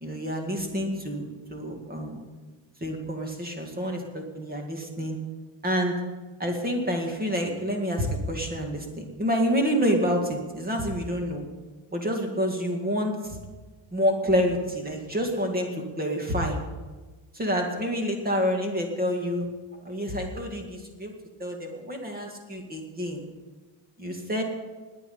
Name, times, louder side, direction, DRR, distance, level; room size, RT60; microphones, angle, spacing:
voice 1, 0.0-2.2 2.8-5.2 5.6-6.0 6.4-11.4 11.9-13.4 13.9-15.7 16.0-16.6 17.3-19.5 19.8-21.1 21.4-23.2 24.0-24.4, equal, 20° right, 3 dB, 2.2 m, -28 dB
20.5 x 8.9 x 5.5 m, 1.3 s
cardioid pair, 170°, 48 cm